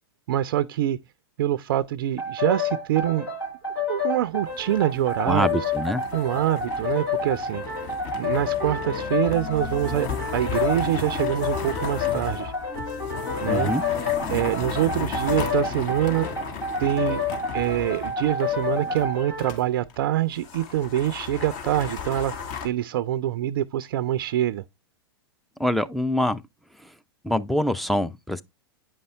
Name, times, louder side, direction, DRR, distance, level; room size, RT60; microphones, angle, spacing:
voice 1, 0.3-1.0 1.4-3.3 3.9-5.7 6.1-7.6 8.2-12.5 13.4-13.7 14.3-16.3 16.8-17.2 17.5-22.4 22.6-24.6, right 12 dB, 55° right, 0.4 m, -25 dB
sound 1, 2.2-19.6, left 4 dB, 75° left, 5.8 m, -29 dB
sound 2, 4.4-19.6 19.9-20.0 20.3-22.7, left 6 dB, 50° left, 2.0 m, -35 dB
voice 2, 5.3-6.0 13.4-13.8 25.6-26.4 27.2-28.4, left 1 dB, ahead, 0.5 m, -24 dB
Wind instrument woodwind instrument, 8.3-15.8, left 7 dB, 20° left, 2.7 m, -43 dB
8.9 x 5.4 x 3.3 m
figure-of-eight pair, 100°, 13 cm